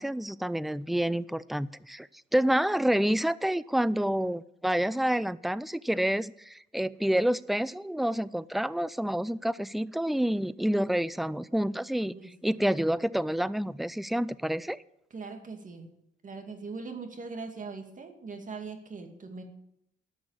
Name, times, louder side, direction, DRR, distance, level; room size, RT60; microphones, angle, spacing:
voice 1, 0.0-2.1 2.3-12.1 12.4-14.8, right 1 dB, ahead, 18 dB, 0.4 m, -28 dB
voice 2, 12.0-12.3 15.1-15.9 16.2-19.4, right 4 dB, 40° right, 5 dB, 2.3 m, -41 dB
11.5 x 6.2 x 8.8 m, 0.79 s
cardioid pair, 90°, 20 cm